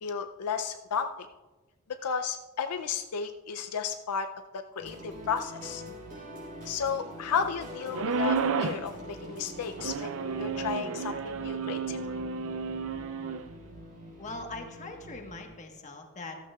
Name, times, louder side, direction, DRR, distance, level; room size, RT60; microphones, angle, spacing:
voice 1, 0.0-1.1 2.0-5.8 6.7-12.2, left 6 dB, 75° left, 7 dB, 0.5 m, -33 dB
sound 1, 4.8-15.4, equal, 35° right, 3.9 m, -44 dB
sound 2, 7.9-8.9 9.8-13.4, right 5 dB, 60° right, 0.4 m, -31 dB
voice 2, 14.2-16.4, left 2 dB, 35° left, 3 dB, 1.3 m, -41 dB
14.0 x 13.0 x 2.3 m, 1.2 s
head